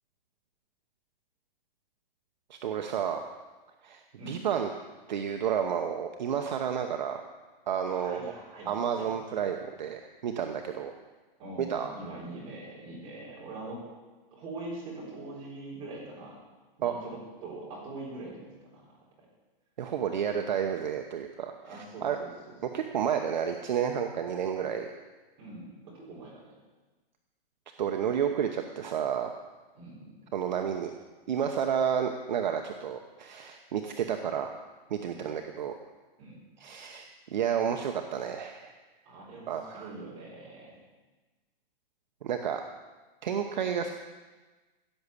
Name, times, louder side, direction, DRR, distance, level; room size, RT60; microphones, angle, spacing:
voice 1, 2.5-3.2 3.8-4.0 4.3-4.7 5.1-7.2 7.7-8.3 8.7-10.9 11.6-11.9 16.8-16.9 19.8-22.2 22.7-24.9 27.8-29.3 30.3-30.9 31.3-35.7 36.6-37.0 37.3-38.7 39.5-39.9 42.2-42.6 43.2-43.9, right 8 dB, 50° right, 5 dB, 0.9 m, -31 dB
voice 2, 7.8-8.7 9.0-9.4 11.4-13.8 14.3-16.4 16.8-18.9 21.6-22.8 25.4-26.5 29.7-30.3 30.7-30.8 35.1-35.3 36.2-36.4 39.0-40.8, right 2 dB, 15° right, -5 dB, 4.3 m, -43 dB
16.0 x 7.2 x 8.2 m, 1.2 s
hypercardioid pair, 180°, 29 cm